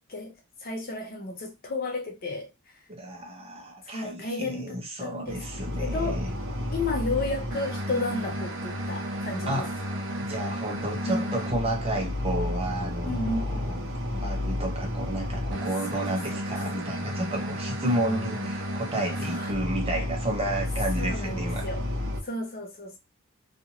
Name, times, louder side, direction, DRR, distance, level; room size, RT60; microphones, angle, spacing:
voice 1, 0.6-2.5 3.8-5.4 5.8-9.6 11.0-11.4 13.1-13.8 16.1-16.4 17.8-18.5 19.3-19.6 21.0-21.8 22.2-23.0, left 2 dB, 45° left, 0.7 m, -33 dB
voice 2, 2.9-6.3 9.5-9.7 10.2-13.8 14.1-21.7, right 1 dB, 25° right, 0.7 m, -32 dB
sound 1, 5.2-22.2, left 1 dB, 60° right, 0.7 m, -32 dB
2.7 x 2.4 x 2.8 m
head